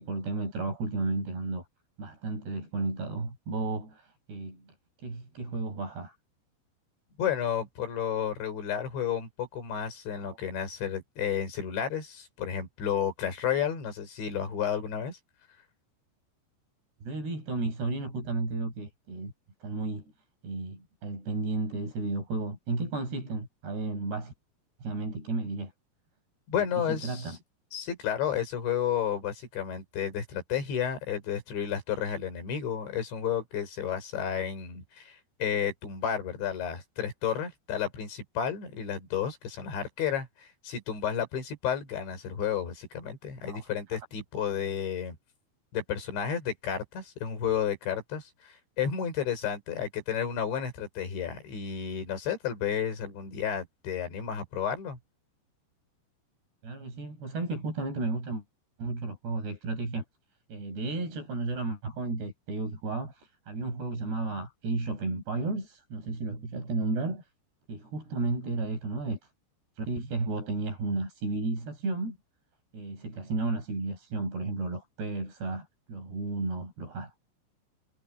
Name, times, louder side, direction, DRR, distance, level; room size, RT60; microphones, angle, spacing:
voice 1, 0.0-1.6 2.0-4.8 5.0-6.2 10.2-10.4 17.0-19.3 19.6-20.1 20.4-24.3 24.8-25.7 26.6-27.4 43.5-43.7 56.6-58.4 58.8-60.0 60.5-67.3 67.7-69.2 69.8-72.2 72.7-77.2, right 3 dB, 65° right, 8.8 m, -33 dB
voice 2, 7.2-15.2 26.5-27.3 27.7-45.2 45.7-55.0, left 8 dB, 80° left, 7.5 m, -32 dB
omnidirectional pair, 5.1 m